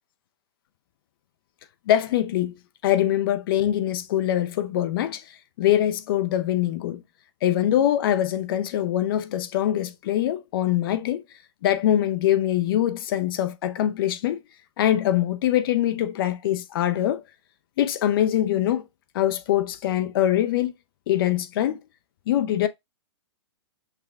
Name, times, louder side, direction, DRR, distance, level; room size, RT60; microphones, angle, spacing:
voice 1, 1.9-2.5 2.8-7.0 7.4-11.2 11.6-14.4 14.8-17.2 17.8-18.8 19.1-20.7 21.1-21.8 22.3-22.7, left 12 dB, 50° left, 0.5 m, -23 dB
5.8 x 2.2 x 3.5 m
hypercardioid pair, 120°, 15 cm